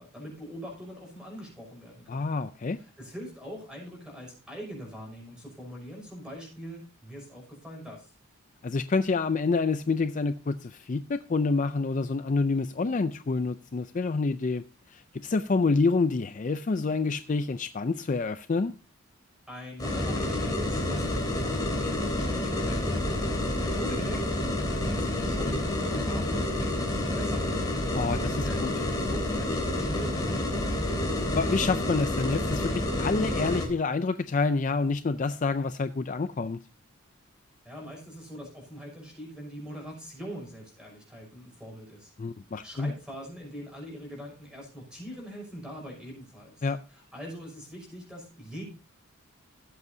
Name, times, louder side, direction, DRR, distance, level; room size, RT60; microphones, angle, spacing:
voice 1, 0.0-2.3 2.8-8.1 19.5-23.3 23.6-24.2 24.8-27.9 28.4-30.9 37.6-42.1 42.6-48.6, equal, 5° right, 6.1 m, -42 dB
voice 2, 2.1-2.8 8.6-18.7 27.9-28.7 31.3-36.6 42.2-42.9 46.6-46.8, left 4 dB, 35° left, 0.4 m, -28 dB
sound 1, 19.8-33.7, left 1 dB, 20° left, 2.9 m, -29 dB
17.0 x 8.1 x 2.7 m
head